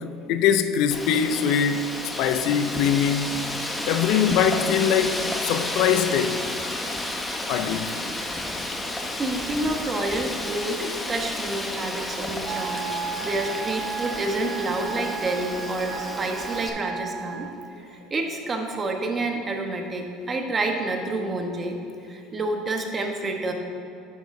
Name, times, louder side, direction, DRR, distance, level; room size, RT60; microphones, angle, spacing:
voice 1, 0.0-1.8 2.2-3.3 3.9-6.4 7.5-7.9, left 8 dB, 70° left, 0.4 m, -22 dB
Wind, 0.9-16.7, left 1 dB, 10° left, 0.9 m, -32 dB
voice 2, 9.2-12.9 13.2-17.5 17.9-21.8 22.1-23.5, right 2 dB, 25° right, 1.1 m, -28 dB
Wind instrument woodwind instrument, 12.4-17.6, right 7 dB, 45° right, 0.4 m, -34 dB
10.5 x 7.9 x 2.7 m
supercardioid pair, 105°, 0 cm